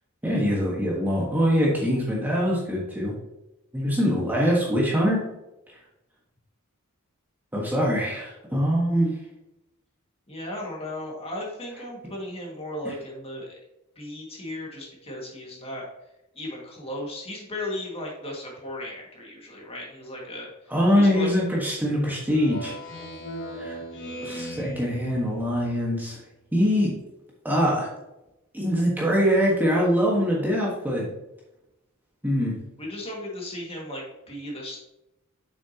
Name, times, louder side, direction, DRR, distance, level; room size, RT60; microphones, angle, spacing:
voice 1, 0.2-3.1 3.7-5.2 7.5-9.2 20.7-22.7 23.6-23.8 24.2-26.2 26.5-26.9 27.4-27.9 28.5-31.1 32.2-32.6, equal, 10° right, -4 dB, 1.4 m, -23 dB
voice 2, 10.3-13.5 14.0-15.8 16.3-20.5 21.0-21.3 32.8-34.8, left 1 dB, 25° left, -2 dB, 2.0 m, -36 dB
Speech synthesizer, 22.3-25.8, equal, 55° left, 2.0 m, -38 dB
7.6 x 6.3 x 2.9 m, 0.93 s
head